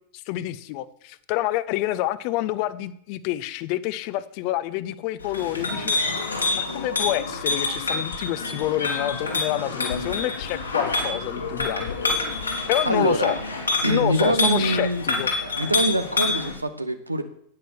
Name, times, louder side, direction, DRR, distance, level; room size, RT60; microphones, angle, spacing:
voice 1, 0.1-6.0 6.5-12.2 12.7-13.4 13.9-15.3, left 14 dB, 45° left, 15 dB, 0.7 m, -28 dB
Chink clink, 5.2-16.5, left 3 dB, 80° left, 2.5 m, -27 dB
sound 1, 6.0-14.0, left 7 dB, 60° left, 2.6 m, -40 dB
voice 2, 12.8-13.4 13.8-15.1 15.6-17.2, right 1 dB, 85° right, 9 dB, 1.1 m, -24 dB
9.7 x 9.3 x 6.4 m, 0.68 s
figure-of-eight pair, 90°, 0 cm